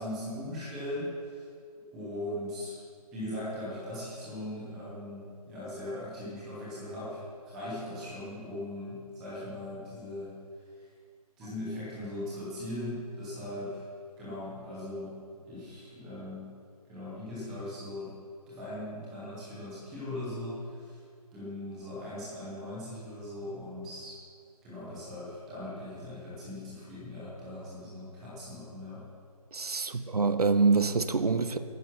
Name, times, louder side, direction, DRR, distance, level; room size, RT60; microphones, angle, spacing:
voice 1, 0.0-1.5 1.9-2.8 3.1-10.3 10.6-10.9 11.4-13.8 14.2-15.1 15.4-16.5 16.9-18.1 18.5-21.0 21.3-24.1 24.6-29.0 29.8-30.0, left 1 dB, ahead, -9 dB, 0.6 m, -39 dB
voice 2, 29.5-31.6, right 4 dB, 75° right, 11 dB, 0.9 m, -25 dB
11.5 x 9.4 x 5.9 m, 2.2 s
figure-of-eight pair, 170°, 20 cm